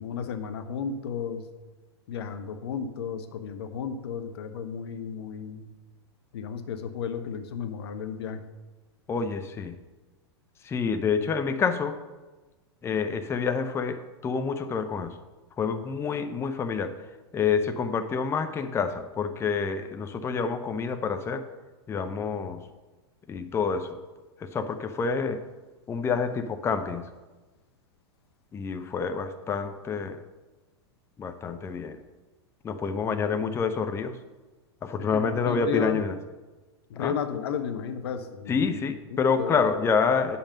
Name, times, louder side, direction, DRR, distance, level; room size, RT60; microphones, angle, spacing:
voice 1, 0.0-1.5 2.1-5.6 6.3-8.4 35.0-36.0 36.9-38.8 39.1-39.5, left 7 dB, 70° left, 9 dB, 0.9 m, -33 dB
voice 2, 9.1-9.7 10.6-12.0 12.8-15.2 15.6-17.0 17.3-21.4 21.9-22.6 23.3-24.0 24.4-25.4 25.9-27.1 28.5-30.2 31.2-32.0 32.6-34.2 34.8-36.1 37.0-37.1 38.5-40.4, left 5 dB, 20° left, 8 dB, 0.6 m, -28 dB
8.7 x 5.5 x 5.5 m, 1.2 s
hypercardioid pair, 110°, 14 cm